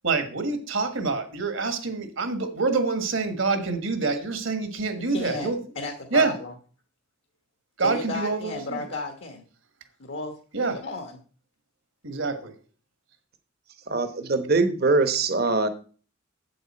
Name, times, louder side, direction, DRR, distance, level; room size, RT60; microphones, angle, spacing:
voice 1, 0.0-5.6 6.1-6.3 7.8-8.8 10.5-10.8 12.0-12.5, right 4 dB, 65° right, 7 dB, 1.5 m, -26 dB
voice 2, 5.0-6.5 7.8-9.4 10.0-11.2, left 3 dB, 60° left, 3 dB, 1.2 m, -34 dB
voice 3, 13.9-15.7, right 3 dB, 50° right, 10 dB, 1.0 m, -22 dB
8.1 x 7.9 x 4.3 m, 0.39 s
head